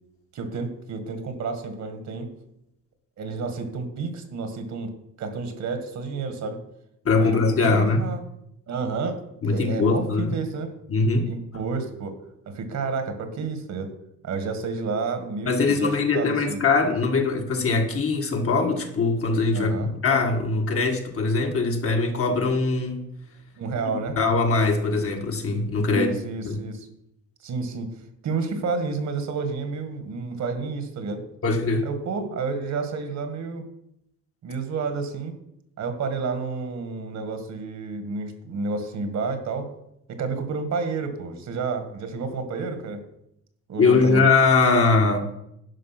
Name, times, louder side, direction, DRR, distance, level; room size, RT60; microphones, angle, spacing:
voice 1, 0.3-2.3 3.2-4.9 5.2-6.6 7.2-7.4 7.6-8.2 8.7-10.7 11.3-12.2 12.5-13.9 14.2-16.6 19.5-19.9 23.6-24.2 25.9-26.9 27.4-27.9 28.2-31.2 31.8-33.6 34.4-35.3 35.8-39.7 40.1-43.0 43.7-44.3, right 4 dB, 65° right, 8 dB, 1.9 m, -30 dB
voice 2, 7.1-8.0 9.4-10.4 10.9-11.3 15.5-23.0 24.2-26.1 26.5-26.6 31.4-31.9 43.8-45.3, left 3 dB, 50° left, 3 dB, 1.7 m, -21 dB
11.0 x 5.3 x 6.0 m, 0.79 s
cardioid pair, 90°, 30 cm